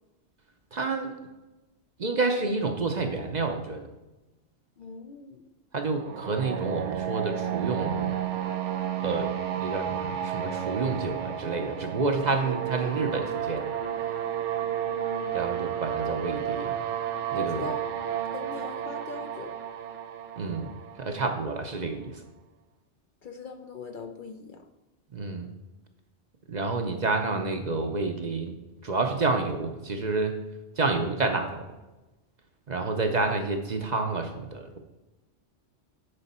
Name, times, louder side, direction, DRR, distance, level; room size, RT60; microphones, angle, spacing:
voice 1, 0.7-1.1 2.0-3.9 5.7-8.1 9.0-13.6 15.3-16.8 17.3-17.7 20.4-20.7 21.0-22.2 25.1-25.5 26.5-28.5 28.8-30.4 30.8-31.6 32.7-34.8, right 3 dB, 45° right, 5 dB, 0.7 m, -29 dB
voice 2, 4.8-5.4 14.8-15.4 17.3-17.9 18.3-19.5 23.2-24.6, left 4 dB, 55° left, 6 dB, 0.6 m, -41 dB
sound 1, 6.0-21.8, right 10 dB, 90° right, 1.1 m, -32 dB
9.8 x 4.9 x 4.2 m, 1.1 s
omnidirectional pair, 1.2 m